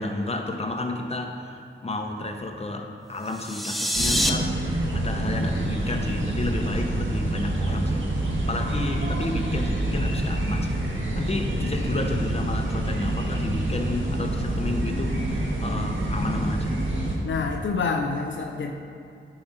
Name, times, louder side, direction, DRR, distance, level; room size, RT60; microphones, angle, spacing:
voice 1, 0.0-8.1 8.5-16.8, left 2 dB, 30° left, 3 dB, 0.9 m, -31 dB
sound 1, 3.2-4.3, equal, ahead, 0.6 m, -25 dB
sound 2, 3.9-17.2, right 1 dB, 70° right, 1.3 m, -27 dB
voice 2, 17.2-18.7, left 4 dB, 70° left, 3 dB, 0.5 m, -27 dB
9.5 x 4.9 x 4.1 m, 2.4 s
cardioid pair, 50°, 21 cm